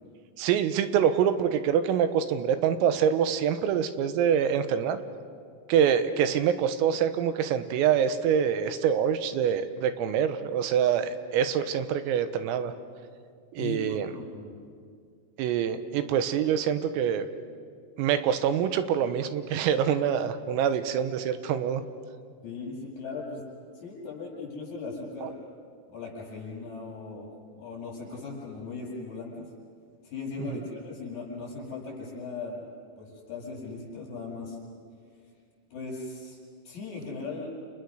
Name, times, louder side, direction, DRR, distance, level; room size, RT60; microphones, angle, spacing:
voice 1, 0.4-5.0 5.7-12.7 13.5-14.1 15.4-17.3 18.0-21.8 25.2-25.3 30.5-30.6, right 8 dB, 90° right, 10 dB, 3.9 m, -25 dB
voice 2, 13.6-14.5 22.4-23.4 23.7-25.3 25.9-27.3 27.6-29.5 30.0-32.6 33.0-34.6 35.7-36.4 36.7-37.5, left 4 dB, 35° left, -4 dB, 9.0 m, -38 dB
30.0 x 30.0 x 6.5 m, 2.1 s
omnidirectional pair, 5.9 m